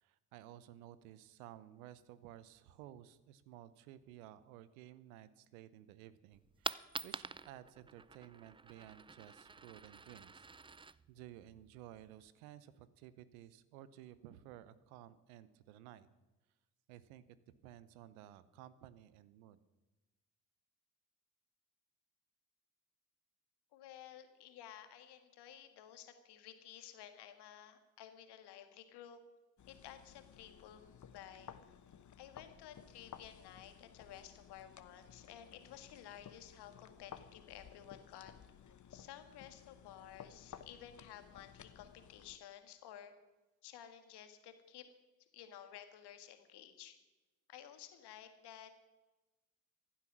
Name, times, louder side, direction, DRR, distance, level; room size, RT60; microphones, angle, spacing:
voice 1, 0.0-10.8 11.1-16.1 16.9-17.2 17.6-19.6, right 12 dB, 80° right, 16 dB, 0.8 m, -55 dB
Coin (dropping), 6.3-12.3, right 4 dB, 15° right, 0.4 m, -48 dB
voice 2, 23.7-29.2 29.7-30.8 31.1-31.5 32.2-38.3 38.9-43.1 43.6-44.8 45.3-47.0 47.5-48.7, left 10 dB, 70° left, 8 dB, 1.7 m, -54 dB
sound 1, 29.6-42.4, left 8 dB, 45° left, 1.1 m, -57 dB
15.5 x 11.5 x 6.1 m, 1.1 s
hypercardioid pair, 40°, 42 cm